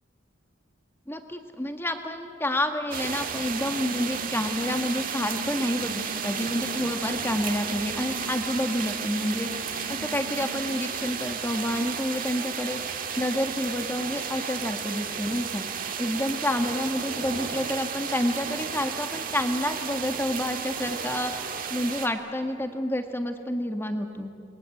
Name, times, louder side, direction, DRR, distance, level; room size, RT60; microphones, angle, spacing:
voice 1, 1.1-15.6 16.0-21.4 21.7-24.3, left 1 dB, 10° left, 6 dB, 1.7 m, -29 dB
sound 1, 2.9-22.1, right 6 dB, 45° right, 1.8 m, -33 dB
sound 2, 3.4-10.8, left 1 dB, 60° left, 6.0 m, -42 dB
30.0 x 22.0 x 8.5 m, 2.5 s
head